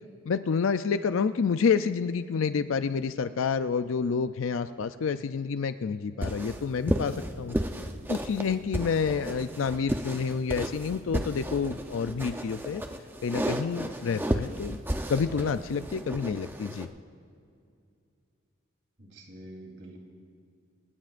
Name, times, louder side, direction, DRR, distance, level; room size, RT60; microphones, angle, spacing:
voice 1, 0.3-7.6 8.1-12.8 13.2-14.8 15.1-16.9, left 5 dB, 85° left, 11 dB, 0.4 m, -28 dB
sound 1, 6.2-16.9, right 1 dB, 10° right, 0.6 m, -33 dB
voice 2, 19.0-20.1, right 1 dB, 60° right, -1 dB, 3.4 m, -46 dB
28.0 x 17.0 x 2.5 m, 2.4 s
head